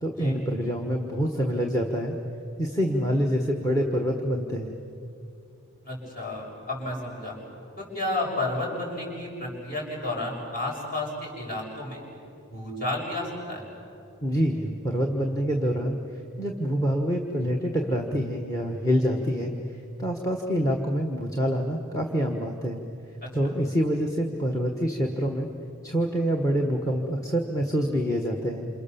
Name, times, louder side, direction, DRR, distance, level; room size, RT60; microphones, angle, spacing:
voice 1, 0.0-2.1 2.6-4.8 14.2-16.0 16.4-19.5 20.0-22.8 23.3-25.5 25.8-28.7, equal, 15° left, 3 dB, 1.4 m, -26 dB
voice 2, 5.8-7.4 7.8-12.0 12.5-13.6 23.2-23.5, left 2 dB, 40° left, -2 dB, 7.0 m, -32 dB
28.5 x 28.0 x 7.1 m, 2.7 s
head